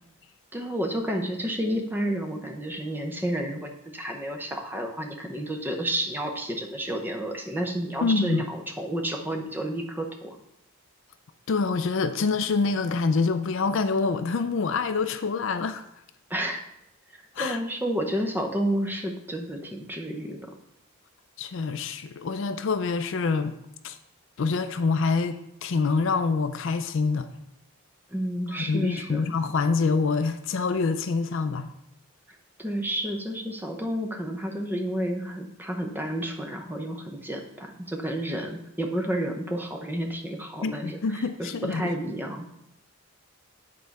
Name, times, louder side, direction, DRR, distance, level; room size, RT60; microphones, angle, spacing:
voice 1, 0.5-10.4 16.3-16.6 17.1-20.4 28.1-29.3 32.6-42.5, right 1 dB, 10° right, 0.7 m, -31 dB
voice 2, 8.0-8.4 11.5-15.8 17.4-17.6 21.4-23.6 23.8-24.0 24.4-27.3 28.5-31.7 40.6-41.9, left 4 dB, 55° left, 0.4 m, -26 dB
8.5 x 4.5 x 4.1 m
head